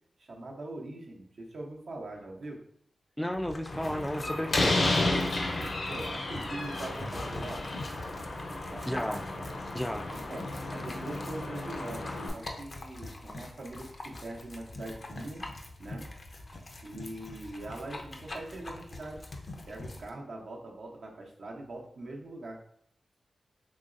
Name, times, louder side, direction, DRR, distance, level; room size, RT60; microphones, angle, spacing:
voice 1, 0.2-2.6 5.9-7.7 8.4-9.1 9.4-9.6 10.3-15.4 15.8-16.1 16.8-19.2 19.7-22.6, right 2 dB, 75° right, -1 dB, 0.8 m, -42 dB
voice 2, 3.2-4.9 8.9-9.3 9.7-10.1, equal, 5° left, 6 dB, 0.4 m, -33 dB
sound 1, 3.3-20.1, left 2 dB, 55° left, 0.6 m, -44 dB
Slam, 3.7-12.3, left 2 dB, 75° left, 0.9 m, -32 dB
3.9 x 3.0 x 2.5 m, 0.67 s
cardioid pair, 45°, 0 cm